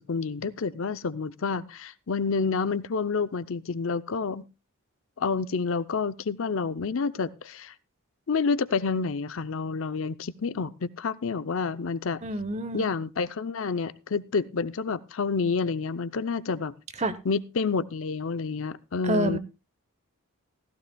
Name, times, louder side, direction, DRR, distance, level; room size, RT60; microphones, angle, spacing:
voice 1, 0.0-4.4 5.2-7.7 8.3-12.2 12.7-16.7 17.3-19.4, left 4 dB, 65° left, 0.5 m, -29 dB
voice 2, 12.2-12.9 17.0-17.2 19.0-19.4, right 1 dB, 30° right, 0.8 m, -27 dB
16.0 x 14.5 x 2.3 m
head